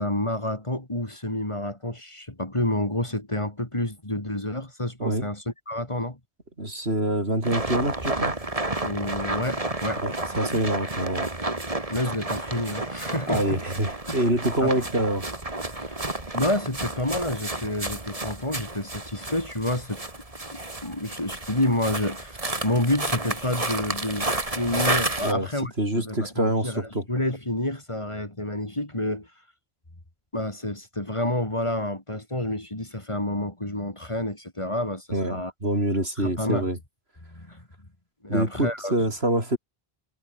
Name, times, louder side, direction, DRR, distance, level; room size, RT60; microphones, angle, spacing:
voice 1, 0.0-6.2 8.8-10.0 11.9-13.6 14.1-14.2 14.6-14.7 15.8-16.0 16.3-20.0 20.5-22.4 22.6-26.8 27.1-29.3 30.3-35.5 36.2-36.7 37.3-37.6 38.2-38.9, left 1 dB, 30° left, 3.1 m, -29 dB
voice 2, 6.6-8.3 10.0-11.3 13.3-15.3 25.2-25.5 25.8-27.1 35.1-36.8 38.3-39.6, right 1 dB, 80° right, 7.5 m, -26 dB
sound 1, 7.4-25.3, right 2 dB, 35° right, 2.8 m, -31 dB
omnidirectional pair, 1.0 m